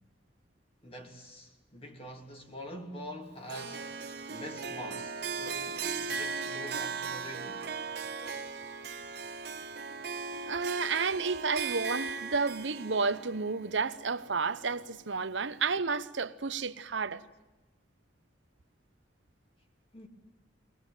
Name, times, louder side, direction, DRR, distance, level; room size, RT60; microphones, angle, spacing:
voice 1, 0.8-7.7 19.9-20.1, equal, 35° left, 3.0 m, -45 dB
Harp, 3.5-14.7, right 5 dB, 60° right, 1.4 m, -38 dB
voice 2, 10.5-17.2, right 4 dB, 85° right, 0.9 m, -31 dB
23.0 x 19.0 x 9.1 m
head